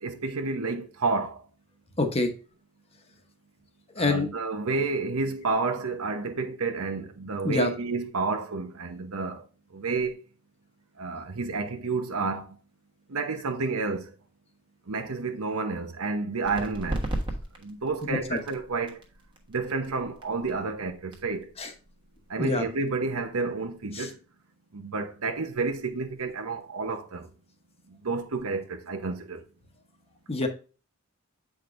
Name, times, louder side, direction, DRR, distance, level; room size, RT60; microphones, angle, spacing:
voice 1, 0.0-1.4 4.0-9.5 9.7-10.2 11.0-12.6 13.1-14.1 14.9-17.1 17.6-19.0 19.5-21.5 22.3-24.2 24.7-27.3 27.9-29.5, right 4 dB, 85° right, 0.9 m, -30 dB
voice 2, 2.0-2.3 3.9-4.3 7.4-7.7 18.3-18.4 21.6-21.7 22.4-22.6 23.9-24.1 30.3-30.5, left 3 dB, 30° left, 1.0 m, -26 dB
sound 1, 16.4-23.8, right 1 dB, 20° right, 1.2 m, -38 dB
7.9 x 5.0 x 2.6 m
head